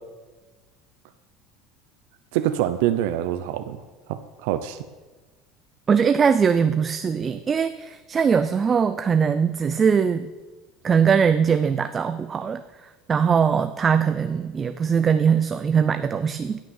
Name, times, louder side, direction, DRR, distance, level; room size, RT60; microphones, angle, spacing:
voice 1, 2.3-3.8 4.1-4.8, right 12 dB, 80° right, 10 dB, 0.7 m, -25 dB
voice 2, 5.9-10.3 10.8-16.6, right 6 dB, 25° right, 11 dB, 0.4 m, -21 dB
16.0 x 6.4 x 7.2 m, 1.3 s
cardioid pair, 145°, 0 cm